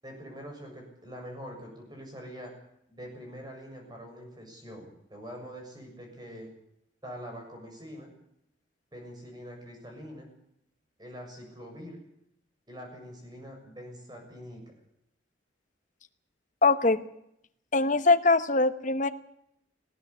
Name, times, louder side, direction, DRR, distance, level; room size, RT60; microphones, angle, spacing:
voice 1, 0.0-2.5 2.9-6.5 7.0-8.1 8.9-10.3 11.0-12.0 12.7-14.6, equal, 20° right, 2 dB, 7.1 m, -44 dB
voice 2, 16.6-17.1 17.7-19.1, left 3 dB, 40° left, 10 dB, 1.1 m, -22 dB
19.0 x 17.0 x 8.4 m, 0.77 s
head